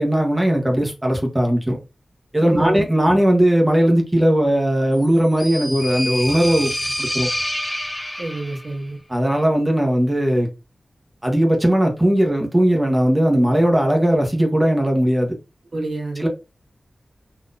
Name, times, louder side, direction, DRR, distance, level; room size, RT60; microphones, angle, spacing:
voice 1, 0.0-1.8 2.3-6.7 7.0-7.3 9.1-10.5 11.2-15.3 16.2-16.3, right 1 dB, 15° right, 1.4 m, -18 dB
voice 2, 2.4-2.8 8.2-9.0 15.7-16.3, right 2 dB, 60° right, 1.8 m, -27 dB
sound 1, 5.0-8.7, left 1 dB, 15° left, 1.0 m, -27 dB
4.0 x 3.0 x 2.6 m
wide cardioid pair, 60°, 0 cm